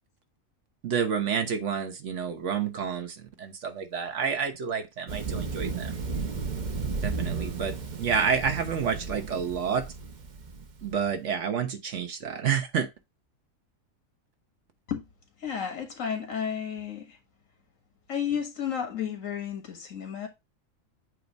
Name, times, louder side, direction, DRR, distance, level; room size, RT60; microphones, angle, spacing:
voice 1, 0.8-5.9 7.0-9.8 10.8-12.9, right 7 dB, 60° right, 1.2 m, -29 dB
Thunder, 5.1-10.9, right 4 dB, 40° right, 0.8 m, -34 dB
voice 2, 15.4-17.2 18.1-20.3, left 8 dB, 70° left, 1.9 m, -32 dB
8.0 x 2.7 x 5.1 m
omnidirectional pair, 1.4 m